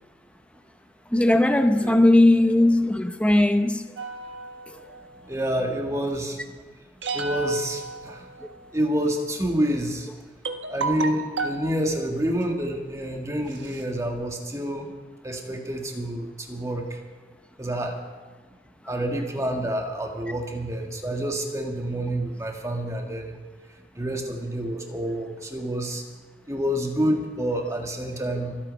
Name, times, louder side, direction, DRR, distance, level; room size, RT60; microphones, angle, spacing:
voice 1, 1.1-3.9 4.7-4.8, left 1 dB, 5° left, 0.7 m, -18 dB
sound 1, 4.0-5.3 7.0-8.8 9.8-9.9 10.5-11.7 12.4-12.7 13.2-13.3 13.5-14.2, right 3 dB, 80° right, 1.5 m, -33 dB
voice 2, 5.3-6.4 7.1-8.3 8.7-10.1 10.7-14.9 15.2-17.0 17.6-18.0 18.9-23.3 24.0-26.0 26.5-28.6, right 1 dB, 15° right, 1.8 m, -28 dB
24.5 x 8.6 x 5.4 m
head